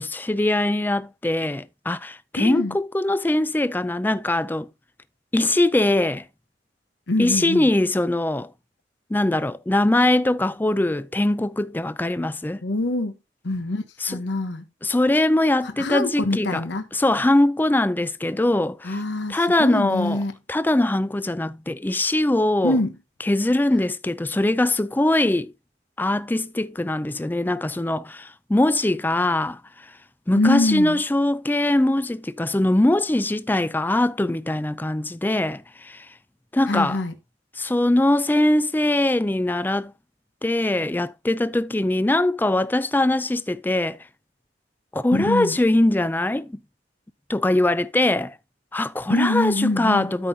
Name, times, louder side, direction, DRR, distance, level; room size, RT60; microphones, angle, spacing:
voice 1, 0.0-4.7 5.3-6.2 7.2-8.5 9.1-12.6 14.0-14.2 14.8-16.6 16.9-18.9 19.3-20.2 20.5-22.8 23.3-25.5 26.0-29.6 30.3-36.1 36.5-37.0 37.6-39.9 40.4-44.0 44.9-46.6 47.3-48.3 48.7-50.3, left 1 dB, 10° left, 0.4 m, -22 dB
voice 2, 2.4-2.8 7.1-7.7 12.6-13.1 13.4-13.8 14.1-14.6 15.6-16.9 18.8-20.3 22.6-22.9 30.3-31.0 36.7-37.1 45.1-45.6 49.1-50.1, left 2 dB, 75° left, 0.9 m, -24 dB
13.0 x 5.4 x 2.7 m
head